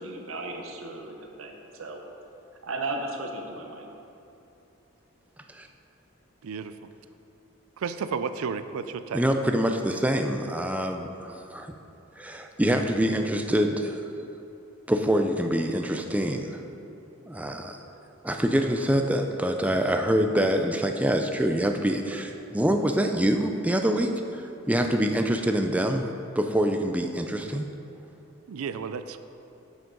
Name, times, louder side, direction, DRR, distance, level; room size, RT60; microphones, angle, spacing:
voice 1, 0.0-2.0 2.6-3.9, right 2 dB, 70° right, 2 dB, 0.9 m, -35 dB
voice 2, 6.4-6.9 7.8-9.2 28.5-29.2, right 6 dB, 90° right, 11 dB, 0.4 m, -32 dB
voice 3, 9.1-11.7 12.2-14.3 14.9-16.6 17.3-17.8 18.2-27.7, equal, 5° right, 4 dB, 0.4 m, -25 dB
7.2 x 6.2 x 5.2 m, 2.8 s
head